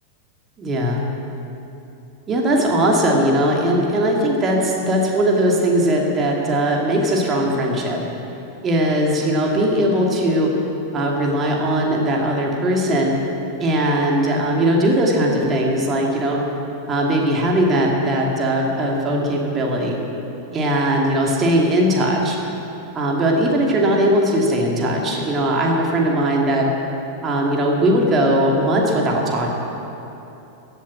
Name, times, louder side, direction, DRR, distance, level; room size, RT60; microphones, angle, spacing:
voice 1, 0.6-1.0 2.3-8.0 8.6-10.5 10.9-13.1 13.6-16.4 16.9-20.0 20.5-22.4 22.9-26.7 27.2-29.5, right 1 dB, 25° right, -1 dB, 2.6 m, -19 dB
15.5 x 8.1 x 8.8 m, 2.9 s
figure-of-eight pair, 90°, 0 cm